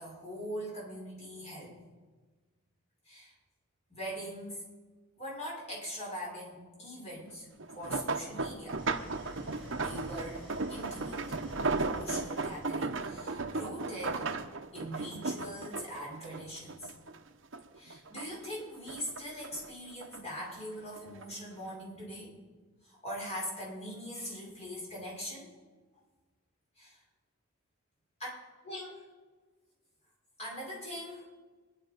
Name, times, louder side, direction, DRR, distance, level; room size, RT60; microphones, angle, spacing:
voice 1, 0.0-1.8 3.1-3.3 3.9-4.6 5.2-7.5 7.7-8.8 9.7-10.4 10.7-11.2 11.8-14.3 14.7-16.9 17.8-22.3 22.8-25.5 26.8-27.0 28.2-28.3 28.6-29.0 30.4-31.2, equal, 35° left, -4 dB, 5.8 m, -42 dB
sound 1, 7.6-17.2 17.5-18.5 18.9-20.2 21.0-21.3 21.7-21.8, right 3 dB, 70° right, 1.0 m, -35 dB
Idling, 8.8-13.0, equal, 10° left, 6.8 m, -49 dB
24.0 x 10.5 x 5.3 m, 1.4 s
head